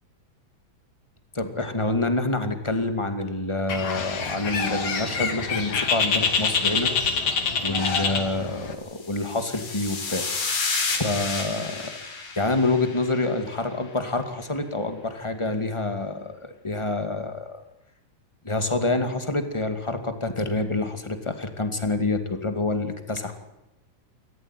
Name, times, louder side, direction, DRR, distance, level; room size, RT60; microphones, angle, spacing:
voice 1, 1.3-6.9 7.6-10.3 10.9-12.0 12.3-17.6 18.4-23.3, left 2 dB, 10° left, 7 dB, 1.7 m, -27 dB
Bird, 3.7-8.7, left 5 dB, 50° left, 3.2 m, -26 dB
sound 1, 9.0-13.5, left 4 dB, 85° left, 5.8 m, -31 dB
27.5 x 14.5 x 9.2 m, 0.90 s
omnidirectional pair, 3.7 m